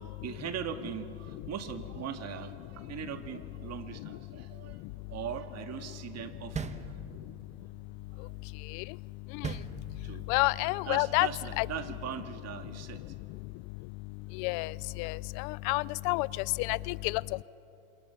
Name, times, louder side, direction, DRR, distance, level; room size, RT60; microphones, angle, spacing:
voice 1, 0.0-4.8 5.1-6.9 10.0-10.2 10.9-13.0, right 8 dB, 45° right, 7 dB, 1.9 m, -40 dB
voice 2, 4.0-4.9 7.1-7.4 8.1-11.3 11.6-11.7 12.7-17.4, left 23 dB, 70° left, 22 dB, 0.5 m, -32 dB
sound 1, 6.6-7.5 9.4-10.4, right 5 dB, 20° right, 1.0 m, -38 dB
29.0 x 27.5 x 5.7 m, 2.8 s
cardioid pair, 130°, 38 cm